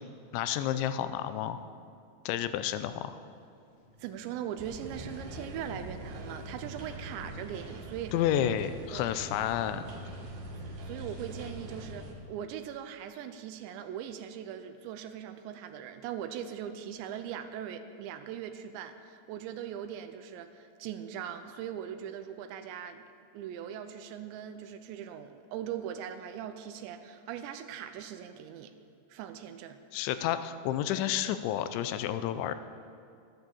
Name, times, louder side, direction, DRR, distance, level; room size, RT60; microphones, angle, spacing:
voice 1, 0.3-1.6 2.3-3.2 8.1-9.8 29.9-32.5, left 11 dB, 85° left, 11 dB, 2.9 m, -30 dB
sound 1, 3.7-9.1, equal, 40° right, 0.8 m, -57 dB
voice 2, 4.0-8.6 8.9-9.1 10.8-23.1 23.3-28.7 29.1-29.8, right 9 dB, 85° right, 9 dB, 2.8 m, -40 dB
sound 2, 4.6-12.1, right 1 dB, 65° right, 3.4 m, -43 dB
13.5 x 11.5 x 7.1 m, 2.5 s
omnidirectional pair, 5.3 m